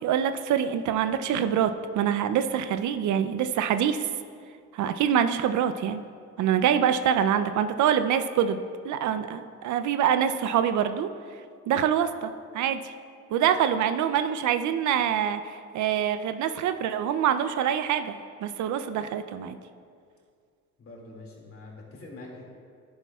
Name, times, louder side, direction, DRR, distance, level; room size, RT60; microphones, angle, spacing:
voice 1, 0.0-4.1 4.7-6.0 6.4-11.1 11.7-12.9 13.3-15.4 15.7-19.6, right 9 dB, 75° right, 10 dB, 0.5 m, -25 dB
voice 2, 20.8-22.4, left 2 dB, 45° left, -2 dB, 2.3 m, -44 dB
10.5 x 10.0 x 2.3 m, 2.2 s
cardioid pair, 90°, 30 cm